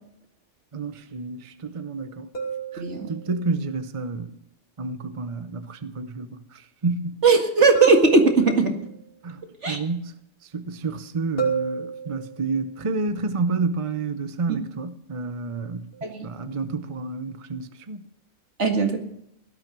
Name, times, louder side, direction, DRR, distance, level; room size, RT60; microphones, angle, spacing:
voice 1, 0.7-2.3 2.7-4.3 4.8-7.2 9.2-10.2 10.4-15.9 16.2-18.0, right 3 dB, 30° right, 0.8 m, -30 dB
sound 1, 2.3-3.5 7.8-9.0 11.4-12.6 15.9-16.1, right 6 dB, 50° left, 3.1 m, -31 dB
voice 2, 2.8-3.1 7.2-8.7 9.6-9.8 14.5-14.6 16.0-16.3 18.6-19.0, right 3 dB, 65° right, 2.3 m, -19 dB
17.5 x 12.5 x 6.1 m
omnidirectional pair, 1.3 m